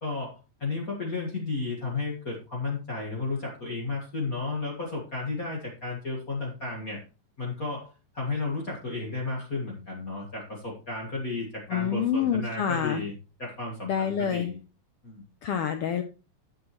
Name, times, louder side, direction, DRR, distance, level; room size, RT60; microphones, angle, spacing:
voice 1, 0.0-7.0 7.4-7.9 8.1-13.1 13.4-14.6 15.0-15.3, left 3 dB, 35° left, -2 dB, 1.7 m, -33 dB
voice 2, 11.7-13.0 13.8-14.5 15.4-16.0, left 8 dB, 80° left, 8 dB, 1.3 m, -27 dB
11.5 x 7.5 x 3.0 m, 0.32 s
omnidirectional pair, 3.4 m